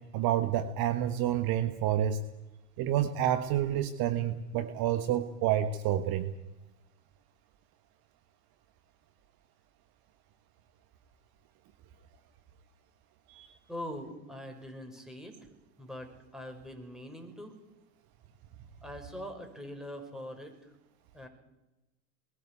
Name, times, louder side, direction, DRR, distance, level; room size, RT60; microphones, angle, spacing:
voice 1, 0.1-2.2 2.8-6.3 13.3-13.5, right 11 dB, 45° right, 10 dB, 1.5 m, -29 dB
voice 2, 13.7-15.3 15.8-17.5 18.8-20.5 21.1-21.3, equal, ahead, 3 dB, 5.9 m, -42 dB
21.5 x 16.5 x 8.6 m, 0.98 s
hypercardioid pair, 90°, 49 cm